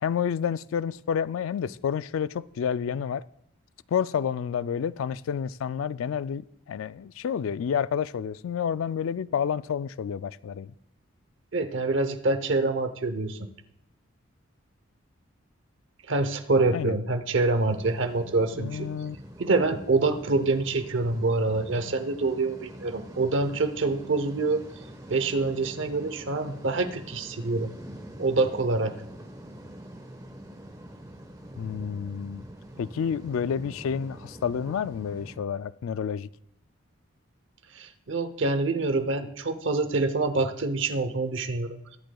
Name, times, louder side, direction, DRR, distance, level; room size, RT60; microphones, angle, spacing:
voice 1, 0.0-3.2 3.9-10.7 16.7-17.0 18.6-19.2 31.6-32.4 32.8-36.3, left 7 dB, 80° left, 0.3 m, -29 dB
voice 2, 11.5-13.4 16.1-18.9 19.4-24.6 25.1-27.7 28.2-28.9 37.7-42.0, right 3 dB, 65° right, 0.8 m, -26 dB
sound 1, 17.5-35.4, right 1 dB, 15° right, 1.1 m, -45 dB
22.0 x 7.7 x 2.3 m
head